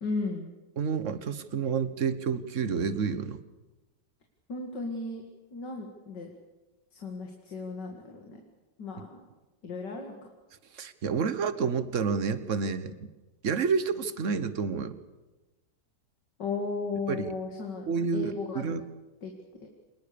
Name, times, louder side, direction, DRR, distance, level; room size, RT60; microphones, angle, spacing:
voice 1, 0.0-0.5 4.5-5.2 5.5-6.3 6.9-8.4 8.8-9.2 9.6-10.3 16.4-17.9 18.1-18.7 19.2-19.3 19.6-19.7, left 3 dB, 70° left, 2 dB, 2.8 m, -35 dB
voice 2, 0.8-3.4 10.7-12.9 13.4-14.9 17.1-17.3 17.9-18.8, right 5 dB, 50° right, 13 dB, 1.3 m, -29 dB
25.5 x 20.5 x 6.9 m, 1.1 s
omnidirectional pair, 1.9 m